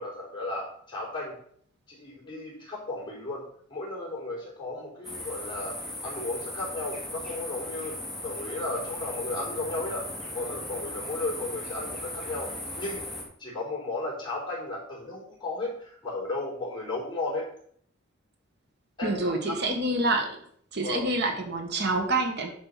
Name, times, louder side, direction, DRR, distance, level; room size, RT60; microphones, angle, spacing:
voice 1, 0.0-1.3 1.9-3.4 3.7-5.7 6.0-7.9 8.2-10.0 10.3-13.0 13.4-17.5 19.0-19.6 20.8-21.1, left 2 dB, 25° left, -5 dB, 4.5 m, -34 dB
sound 1, 5.0-13.2, left 1 dB, ahead, 2.8 m, -37 dB
voice 2, 19.0-20.4 20.7-22.5, right 2 dB, 55° right, 3 dB, 1.4 m, -27 dB
10.5 x 5.1 x 5.7 m, 0.62 s
head